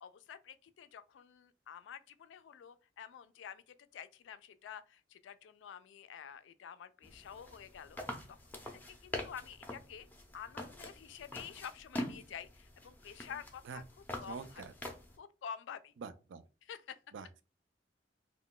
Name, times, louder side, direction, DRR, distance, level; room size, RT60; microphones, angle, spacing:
voice 1, 0.0-8.4 8.7-10.1 10.3-13.8 14.2-14.5 15.2-15.9 16.7-17.0, left 8 dB, 80° left, 0.3 m, -49 dB
sound 1, 7.0-15.2, left 1 dB, 10° left, 0.4 m, -45 dB
voice 2, 14.3-14.7 16.0-16.4 17.1-17.5, right 5 dB, 80° right, 0.4 m, -46 dB
2.2 x 2.1 x 3.7 m
head